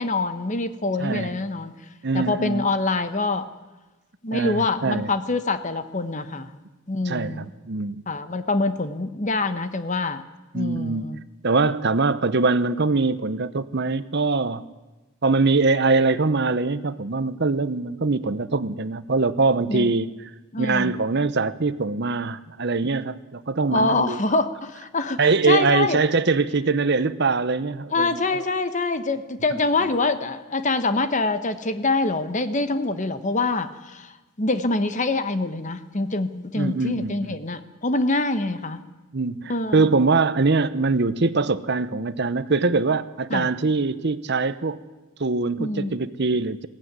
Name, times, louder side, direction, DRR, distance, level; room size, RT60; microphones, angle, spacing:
voice 1, 0.0-1.7 2.1-3.5 4.2-6.5 6.9-7.5 8.1-10.2 10.5-11.2 19.7-19.9 20.5-21.0 23.7-26.0 27.9-38.8 39.5-39.9 43.3-43.5 45.6-45.9, left 3 dB, 35° left, 11 dB, 1.1 m, -25 dB
voice 2, 1.0-1.3 2.0-2.7 4.3-5.1 7.1-8.0 10.5-11.1 11.4-14.6 15.2-20.1 20.6-24.2 25.2-28.4 36.6-37.4 39.1-44.8 45.2-46.7, right 3 dB, 50° right, 14 dB, 0.8 m, -23 dB
21.0 x 15.5 x 9.6 m, 1.2 s
head